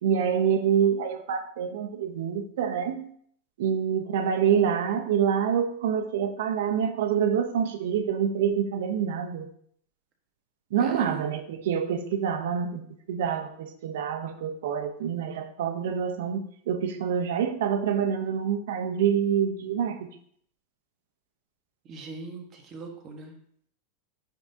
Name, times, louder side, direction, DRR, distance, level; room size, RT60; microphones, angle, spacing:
voice 1, 0.0-3.1 3.6-9.5 10.7-20.2, right 8 dB, 75° right, 7 dB, 0.7 m, -26 dB
voice 2, 10.8-11.4 21.8-23.3, right 3 dB, 30° right, 1 dB, 1.3 m, -41 dB
9.5 x 3.6 x 2.7 m, 0.62 s
supercardioid pair, 135°, 0 cm